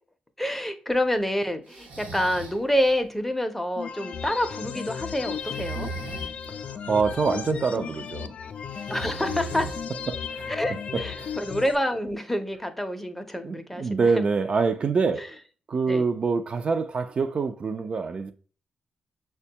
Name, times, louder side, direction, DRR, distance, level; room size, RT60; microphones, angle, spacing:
voice 1, 0.4-5.9 8.9-9.7 10.5-14.1 15.1-15.3 15.9-16.0, left 1 dB, 5° left, 0.5 m, -27 dB
Breathing, 1.7-2.6 5.3-6.3 8.7-10.1, right 4 dB, 80° right, 1.0 m, -38 dB
sound 1, 3.8-11.8, left 7 dB, 55° left, 0.3 m, -35 dB
voice 2, 6.5-8.3 10.1-10.5 10.9-11.4 13.4-15.4 15.7-18.3, right 4 dB, 45° right, 0.3 m, -26 dB
6.2 x 2.2 x 2.8 m
cardioid pair, 90°, 3 cm